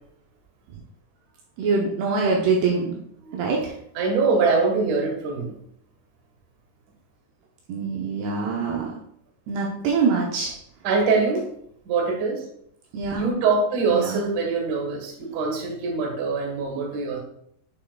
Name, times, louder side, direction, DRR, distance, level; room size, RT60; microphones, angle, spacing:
voice 1, 1.6-3.0 3.3-3.6 7.7-8.9 9.5-10.5 12.9-13.3 13.9-14.2, right 4 dB, 75° right, -2 dB, 2.8 m, -24 dB
voice 2, 3.9-5.6 10.8-11.5 11.9-12.5 13.2-17.2, right 4 dB, 60° right, 1 dB, 2.5 m, -23 dB
10.0 x 5.5 x 2.3 m, 0.70 s
omnidirectional pair, 4.9 m